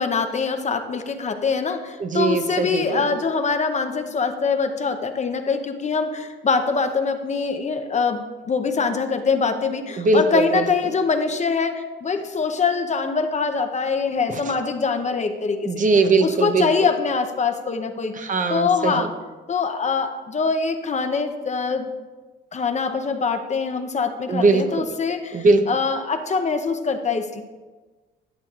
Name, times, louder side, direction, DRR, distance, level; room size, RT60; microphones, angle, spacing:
voice 1, 0.0-15.8 16.2-18.1 18.5-19.1 19.5-21.9 22.5-27.4, left 5 dB, 35° left, 7 dB, 0.7 m, -24 dB
voice 2, 2.0-3.1 10.0-10.7 14.3-14.5 15.7-16.7 18.1-19.1 24.3-24.9 25.3-25.6, right 3 dB, 40° right, 7 dB, 0.7 m, -20 dB
12.0 x 7.0 x 2.4 m, 1.3 s
cardioid pair, 90°, 20 cm